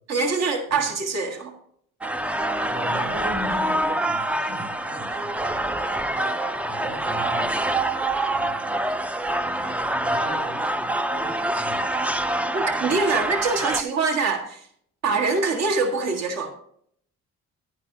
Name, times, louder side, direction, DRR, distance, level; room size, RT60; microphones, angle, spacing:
voice 1, 0.1-1.5 12.5-14.6 15.0-16.5, right 4 dB, 60° right, 2 dB, 1.7 m, -24 dB
sound 1, 2.0-13.8, right 1 dB, 5° right, 0.4 m, -26 dB
voice 2, 2.6-7.7 8.2-8.9 9.5-11.9, right 1 dB, 80° right, -9 dB, 4.0 m, -38 dB
10.0 x 10.0 x 2.8 m, 0.66 s
cardioid pair, 90°, 30 cm